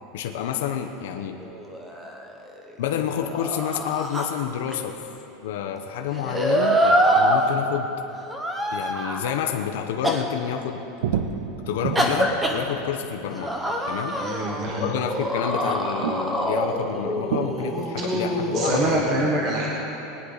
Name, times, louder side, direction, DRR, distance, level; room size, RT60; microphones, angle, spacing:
voice 1, 0.1-1.4 2.8-5.0 5.4-7.9 8.7-10.8 11.7-13.6 13.9-14.2 14.8-19.3, left 9 dB, 80° left, 4 dB, 0.8 m, -29 dB
sound 1, 1.4-2.7 3.1-4.8 6.1-7.4 8.3-9.4 10.0-10.2 11.9-12.6 13.3-19.0, right 1 dB, 10° right, 0.8 m, -25 dB
sound 2, 4.1-4.2 5.6-5.7 8.2-8.3 11.0-15.6 16.0-18.5, right 8 dB, 70° right, 0.7 m, -33 dB
voice 2, 14.2-14.9 18.0-18.2 18.5-19.7, right 2 dB, 30° right, -3 dB, 1.5 m, -26 dB
20.0 x 9.9 x 4.1 m, 3.0 s
supercardioid pair, 175°, 0 cm